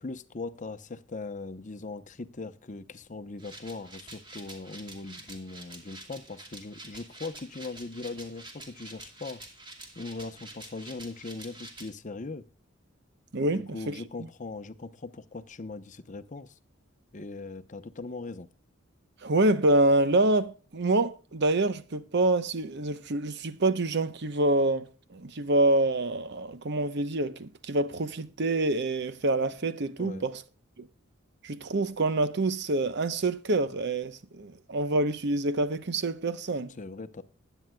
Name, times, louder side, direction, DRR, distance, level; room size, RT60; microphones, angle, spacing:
voice 1, 0.0-9.4 10.0-12.5 13.5-16.5 17.1-18.5 30.0-30.2 36.8-37.2, left 3 dB, 40° left, 0.8 m, -40 dB
sound 1, 3.4-11.9, right 2 dB, 25° right, 2.6 m, -47 dB
voice 2, 13.3-14.0 19.2-30.4 30.8-30.9 31.4-36.8, right 2 dB, 60° right, 0.9 m, -26 dB
20.5 x 9.2 x 2.3 m
head